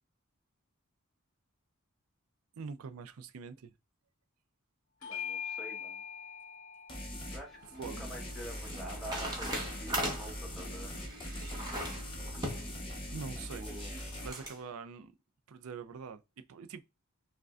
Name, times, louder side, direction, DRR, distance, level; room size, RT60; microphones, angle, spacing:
voice 1, 2.6-3.7 7.8-8.1 13.1-13.7 14.2-15.1 15.5-16.2 16.5-16.8, right 5 dB, 75° right, 0.4 m, -44 dB
Bell / Doorbell, 5.0-9.8, left 8 dB, 75° left, 0.7 m, -44 dB
voice 2, 5.0-6.0 7.3-10.9 13.5-13.9, right 1 dB, ahead, 1.2 m, -47 dB
sound 1, 6.9-7.4 7.8-14.3, equal, 25° left, 0.9 m, -41 dB
sound 2, 7.5-14.6, right 1 dB, 20° right, 1.0 m, -41 dB
4.9 x 2.2 x 2.4 m
head